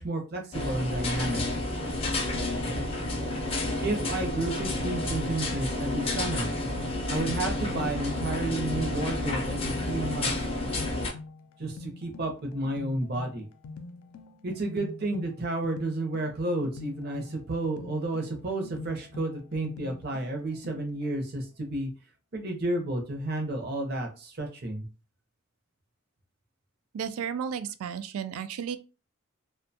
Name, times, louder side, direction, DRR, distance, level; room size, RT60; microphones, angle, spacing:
voice 1, 0.0-1.4 3.8-6.5 7.1-10.4 11.6-13.5 14.4-21.9 22.3-24.8, right 2 dB, 45° right, 0.6 m, -31 dB
sound 1, 0.5-11.1, left 2 dB, 25° left, 0.4 m, -30 dB
sound 2, 6.5-21.1, left 3 dB, 85° left, 0.4 m, -45 dB
voice 2, 26.9-28.8, right 7 dB, 85° right, 0.3 m, -33 dB
2.5 x 2.2 x 2.6 m
head